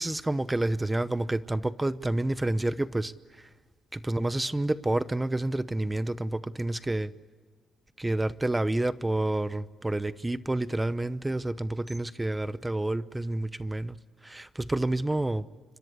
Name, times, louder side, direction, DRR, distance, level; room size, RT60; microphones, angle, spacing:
voice 1, 0.0-3.1 3.9-7.1 8.0-14.0 14.2-15.5, right 1 dB, 15° right, 0.9 m, -29 dB
27.0 x 25.0 x 8.2 m
cardioid pair, 90°, 0 cm